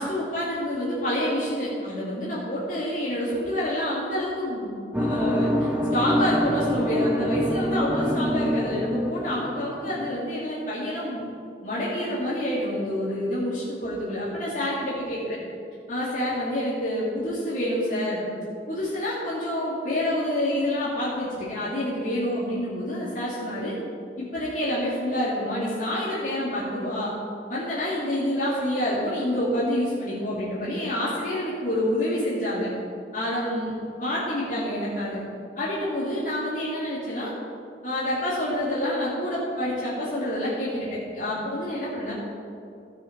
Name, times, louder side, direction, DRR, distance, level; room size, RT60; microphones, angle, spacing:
voice 1, 0.0-11.2 11.6-15.4 15.9-18.3 18.7-23.7 24.2-27.1 27.5-32.7 33.1-33.7 34.0-35.2 35.6-37.3 37.8-42.1, left 1 dB, 45° left, -9 dB, 2.4 m, -27 dB
sound 1, 4.9-10.1, equal, 10° right, 0.8 m, -26 dB
16.5 x 6.5 x 4.6 m, 2.5 s
head